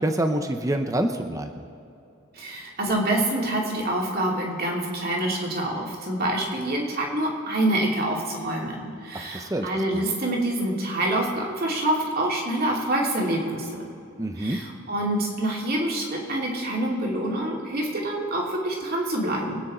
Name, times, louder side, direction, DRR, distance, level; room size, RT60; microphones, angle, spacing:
voice 1, 0.0-1.6 9.1-10.0 14.2-14.6, right 1 dB, 15° right, 6 dB, 0.7 m, -27 dB
voice 2, 2.3-13.9 14.4-19.6, right 1 dB, 45° right, -1 dB, 2.8 m, -26 dB
24.0 x 9.4 x 4.3 m, 2.7 s
head